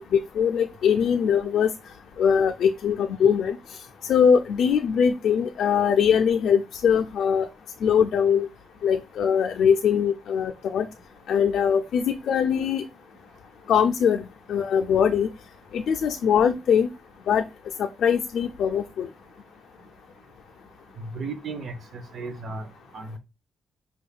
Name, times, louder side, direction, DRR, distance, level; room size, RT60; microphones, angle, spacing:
voice 1, 0.0-1.7 2.2-3.8 4.1-7.5 7.8-8.5 8.8-10.9 11.3-12.8 13.7-14.2 14.5-15.3 15.7-16.9 17.3-17.5 17.8-19.1, left 7 dB, 70° left, 0.4 m, -22 dB
voice 2, 21.0-21.7 22.1-22.7 22.9-23.2, right 3 dB, 50° right, 0.9 m, -34 dB
5.3 x 3.5 x 2.3 m
cardioid pair, 135°, 0 cm